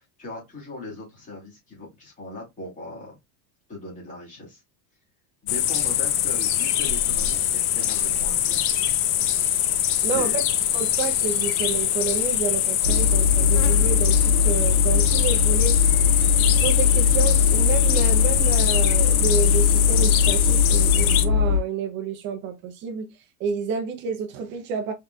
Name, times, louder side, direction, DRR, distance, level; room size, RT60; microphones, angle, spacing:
voice 1, 0.0-3.1 3.7-4.6 5.4-8.7 10.0-10.4, left 2 dB, 15° left, 2.1 m, -39 dB
sound 1, 5.5-21.2, left 11 dB, 65° left, 0.7 m, -23 dB
voice 2, 10.0-10.4 10.7-15.8 16.6-23.1 23.4-24.9, right 6 dB, 25° right, 0.5 m, -29 dB
sound 2, 12.8-21.6, left 6 dB, 10° right, 2.4 m, -20 dB
4.0 x 3.6 x 2.2 m
cardioid pair, 175°, 46 cm